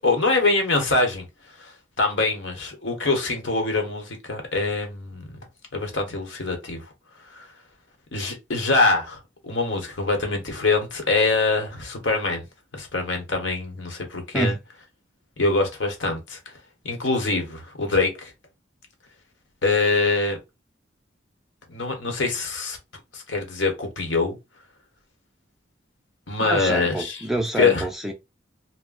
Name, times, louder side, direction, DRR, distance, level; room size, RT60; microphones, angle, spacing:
voice 1, 0.0-1.3 1.6-5.3 5.7-6.8 7.3-7.5 8.1-12.4 12.7-14.5 15.4-16.4 16.8-18.3 19.6-20.4 21.7-22.8 23.1-24.4 26.3-27.2 27.6-27.8, left 3 dB, 80° left, 1.0 m, -24 dB
voice 2, 26.4-28.1, right 1 dB, ahead, 0.4 m, -27 dB
2.4 x 2.1 x 3.7 m
head